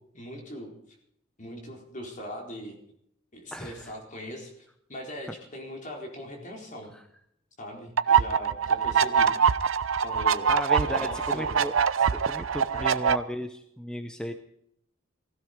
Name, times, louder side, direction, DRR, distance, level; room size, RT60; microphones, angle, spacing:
voice 1, 0.1-0.7 1.4-2.8 3.3-6.9 7.6-9.3 10.0-10.5 10.8-11.6 12.7-13.0, equal, 40° left, 1 dB, 4.2 m, -40 dB
voice 2, 3.5-3.9 6.9-7.0 10.5-14.3, equal, 5° left, 7 dB, 0.7 m, -35 dB
sound 1, 8.0-13.2, right 7 dB, 75° right, 0.6 m, -24 dB
16.5 x 15.5 x 5.1 m, 0.72 s
head